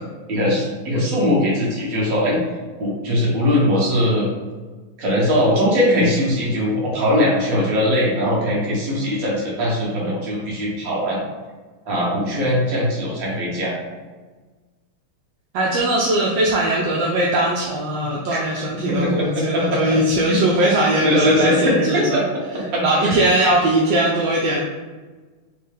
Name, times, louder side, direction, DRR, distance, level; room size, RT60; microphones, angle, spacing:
voice 1, 0.3-2.4 2.8-4.3 5.0-11.2 11.8-13.7 18.3-18.4 18.7-20.0 20.3-20.4 21.0-22.2 22.5-23.1, left 1 dB, 50° right, -4 dB, 1.4 m, -20 dB
voice 2, 15.5-22.2 22.8-24.6, right 1 dB, 75° right, -3 dB, 1.2 m, -20 dB
5.5 x 2.2 x 3.2 m, 1.3 s
omnidirectional pair, 2.3 m